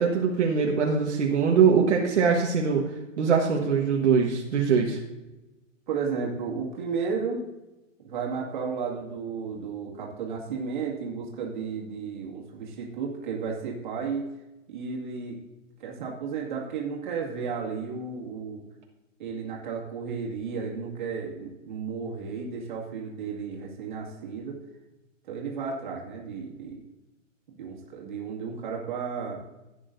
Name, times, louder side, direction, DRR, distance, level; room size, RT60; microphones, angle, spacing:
voice 1, 0.0-2.8 3.2-5.0, right 6 dB, 60° right, 0 dB, 1.5 m, -22 dB
voice 2, 5.9-7.4 8.0-14.3 14.7-15.4 15.8-18.6 19.2-24.6 25.3-26.8 27.5-29.4, right 5 dB, 35° right, -2 dB, 2.2 m, -33 dB
14.5 x 9.0 x 2.6 m, 1.0 s
hypercardioid pair, 175°, 39 cm